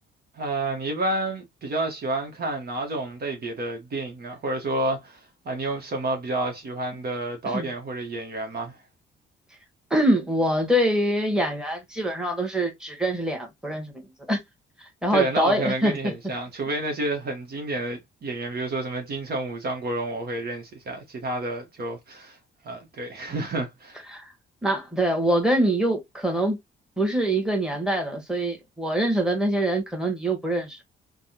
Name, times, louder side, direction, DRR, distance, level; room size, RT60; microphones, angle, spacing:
voice 1, 0.3-8.8 15.1-22.4 22.6-24.0, right 2 dB, 50° right, 1.1 m, -30 dB
voice 2, 9.9-13.9 14.3-14.4 14.8-16.1 24.1-24.3 24.6-26.6 27.0-30.8, right 1 dB, 5° right, 1.5 m, -24 dB
3.4 x 2.3 x 2.7 m
cardioid pair, 90°, 20 cm